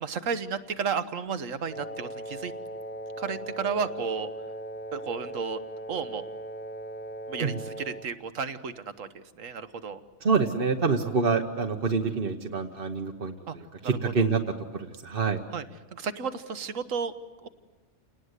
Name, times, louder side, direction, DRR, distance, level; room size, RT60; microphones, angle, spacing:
voice 1, 0.0-2.5 3.2-4.3 4.9-5.6 5.9-6.2 7.3-10.0 12.0-12.2 13.5-13.6 15.5-15.6 15.9-17.1 17.4-17.5, right 6 dB, 70° right, 11 dB, 1.5 m, -33 dB
Wind instrument woodwind instrument, 1.7-8.1, right 1 dB, 10° left, 0.5 m, -39 dB
voice 2, 10.2-14.4 14.7-15.4, right 4 dB, 45° right, 3 dB, 1.2 m, -27 dB
29.0 x 19.5 x 8.1 m, 1.3 s
omnidirectional pair, 1.4 m